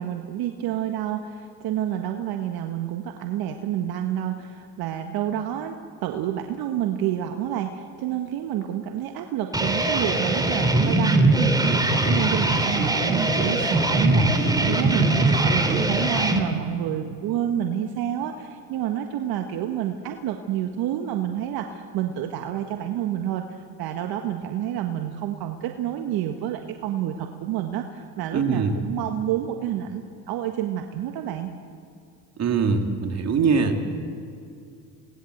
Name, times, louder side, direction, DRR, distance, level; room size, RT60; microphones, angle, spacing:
voice 1, 0.0-31.5, right 11 dB, 65° right, 5 dB, 1.7 m, -29 dB
sound 1, 9.5-16.4, right 2 dB, 10° right, 2.9 m, -21 dB
voice 2, 28.3-28.8 32.4-33.8, right 5 dB, 40° right, 4 dB, 3.1 m, -22 dB
29.0 x 19.5 x 8.0 m, 2.4 s
supercardioid pair, 90°, 39 cm